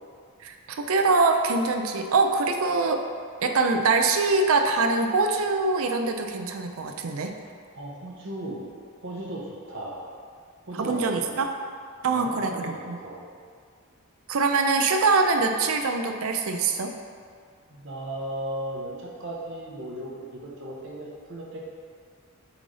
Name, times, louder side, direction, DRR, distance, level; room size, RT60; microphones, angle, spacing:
voice 1, 0.4-3.0 3.4-7.3 10.8-11.5 12.0-13.0 14.3-16.9, right 3 dB, 70° right, 5 dB, 0.5 m, -23 dB
voice 2, 7.7-8.6 9.0-10.0 10.7-11.3 12.1-13.2 17.7-21.6, right 1 dB, 55° right, -3 dB, 0.9 m, -36 dB
7.1 x 3.3 x 4.0 m, 2.1 s
head